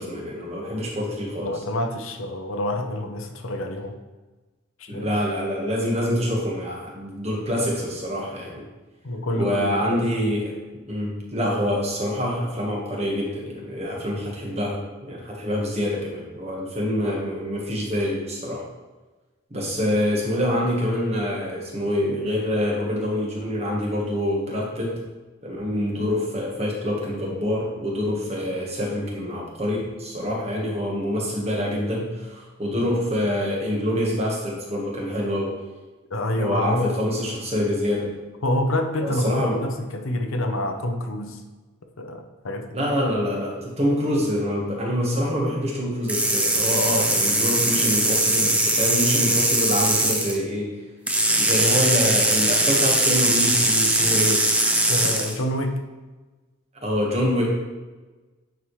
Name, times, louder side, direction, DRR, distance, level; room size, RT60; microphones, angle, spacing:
voice 1, 0.0-1.6 4.9-8.7 9.3-10.5 10.9-18.6 19.5-25.0 25.4-35.5 36.4-38.2 39.0-39.6 42.7-50.8 51.4-54.5 56.8-57.4, equal, 30° right, -2 dB, 1.4 m, -26 dB
voice 2, 1.4-3.9 4.8-5.1 9.0-10.1 36.1-37.0 38.4-41.4 42.0-42.8 54.9-55.8, left 1 dB, 85° left, 5 dB, 0.8 m, -27 dB
sound 1, 46.1-50.4 51.1-55.4, right 1 dB, 5° right, 0.6 m, -21 dB
9.2 x 4.7 x 3.2 m, 1.2 s
head